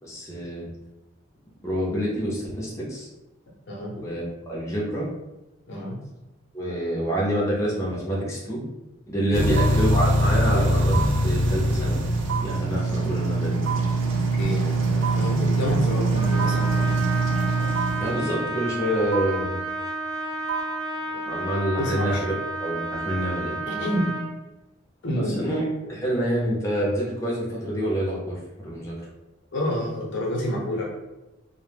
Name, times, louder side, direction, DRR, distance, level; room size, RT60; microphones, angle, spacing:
voice 1, 0.0-0.7 1.6-3.1 4.0-4.2 4.5-5.1 6.5-8.6 9.1-11.0 11.2-12.0 12.4-13.6 18.0-19.6 21.2-22.3 22.6-23.6 25.2-25.6 25.9-29.0, equal, 15° left, -5 dB, 0.5 m, -27 dB
sound 1, 9.3-18.4 19.1-19.2 20.5-20.6, right 2 dB, 70° right, 0.4 m, -23 dB
voice 2, 14.4-16.9 21.8-22.2 23.7-24.1 25.0-25.5 29.5-30.8, equal, 65° left, -2 dB, 0.6 m, -28 dB
Trumpet, 16.1-24.3, right 2 dB, 15° right, 0.7 m, -31 dB
2.1 x 2.1 x 3.2 m, 0.97 s
head